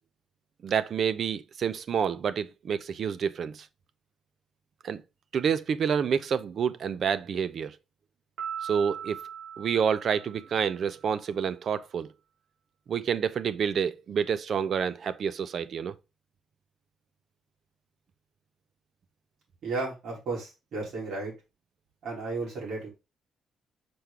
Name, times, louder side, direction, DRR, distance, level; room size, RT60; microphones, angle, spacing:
voice 1, 0.6-3.7 4.8-5.0 5.3-7.8 8.6-9.2 9.6-12.1 12.9-15.9, right 7 dB, 50° right, 0.5 m, -28 dB
Piano, 8.4-10.9, right 8 dB, 80° right, 3.0 m, -39 dB
voice 2, 19.6-21.3 22.0-22.9, right 3 dB, 65° right, 4.1 m, -33 dB
6.0 x 4.7 x 3.7 m
cardioid pair, 150°, 0 cm